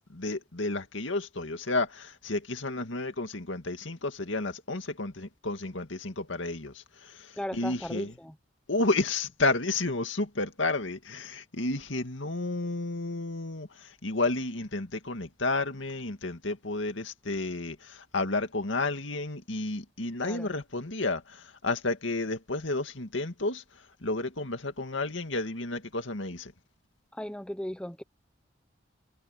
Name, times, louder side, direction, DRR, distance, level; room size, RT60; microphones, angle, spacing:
voice 1, 0.0-8.1 8.7-26.5, left 2 dB, 85° left, 2.2 m, -31 dB
voice 2, 7.4-8.3 20.2-20.5 27.1-28.0, equal, 5° left, 0.7 m, -37 dB
head